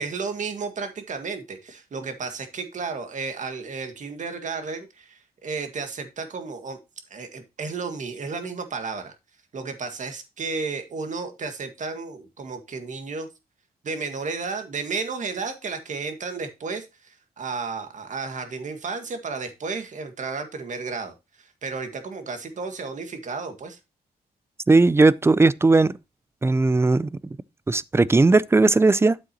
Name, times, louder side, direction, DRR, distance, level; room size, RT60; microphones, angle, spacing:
voice 1, 0.0-6.8 7.1-9.1 9.5-13.3 13.8-23.8, right 4 dB, 50° right, 1.9 m, -33 dB
voice 2, 24.7-25.9 26.4-27.1 27.7-29.2, right 3 dB, 15° right, 0.4 m, -17 dB
9.2 x 7.7 x 2.9 m
cardioid pair, 120°, 17 cm